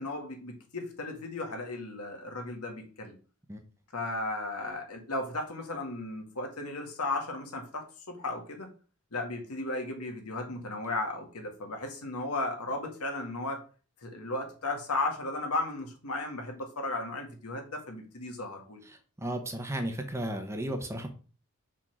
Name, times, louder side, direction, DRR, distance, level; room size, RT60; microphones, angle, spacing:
voice 1, 0.0-3.1 3.9-8.7 9.1-13.6 14.0-18.8, left 2 dB, 85° left, 4 dB, 1.8 m, -35 dB
voice 2, 19.2-21.1, right 1 dB, 10° right, 5 dB, 0.9 m, -34 dB
6.2 x 3.7 x 5.9 m, 0.38 s
head